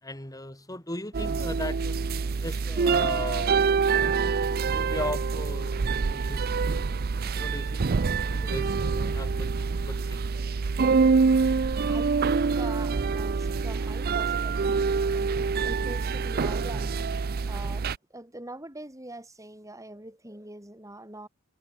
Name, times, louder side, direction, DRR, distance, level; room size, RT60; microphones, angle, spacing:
voice 1, 0.0-2.0 2.4-3.9 4.3-6.6 7.4-8.0 8.3-9.5 9.9-10.2, left 2 dB, 15° left, 6.8 m, -37 dB
sound 1, 1.1-18.0, right 5 dB, 45° right, 0.5 m, -26 dB
voice 2, 11.6-21.3, right 1 dB, 15° right, 6.2 m, -43 dB
head